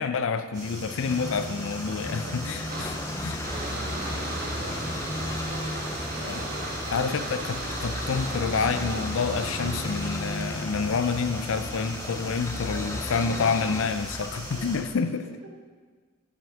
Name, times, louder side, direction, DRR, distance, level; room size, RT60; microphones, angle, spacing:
voice 1, 0.0-2.9 3.2-3.4 6.2-6.5 6.9-15.2, left 5 dB, 65° left, 11 dB, 0.5 m, -28 dB
sound 1, 0.5-14.8, right 1 dB, 20° right, 1.9 m, -42 dB
sound 2, 0.6-14.9, left 1 dB, 15° left, 0.5 m, -34 dB
voice 2, 2.0-6.5 12.6-13.1 14.3-15.6, equal, 80° right, 1 dB, 1.1 m, -48 dB
sound 3, 2.7-10.2, right 2 dB, 45° right, 1.2 m, -37 dB
9.2 x 6.2 x 3.6 m, 1.5 s
head